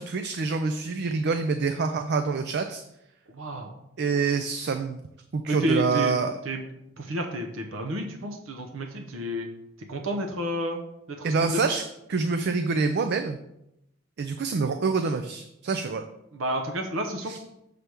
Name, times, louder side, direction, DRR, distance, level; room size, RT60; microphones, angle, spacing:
voice 1, 0.0-2.8 4.0-5.0 5.3-6.3 11.2-11.8 12.1-13.4 14.2-16.0 17.2-17.4, right 4 dB, 55° right, 8 dB, 0.4 m, -26 dB
voice 2, 3.3-3.7 5.5-6.1 6.4-6.6 7.0-9.5 9.9-10.8 11.1-11.6 16.3-17.4, right 1 dB, 75° right, 3 dB, 0.8 m, -30 dB
6.8 x 3.3 x 6.0 m, 0.83 s
head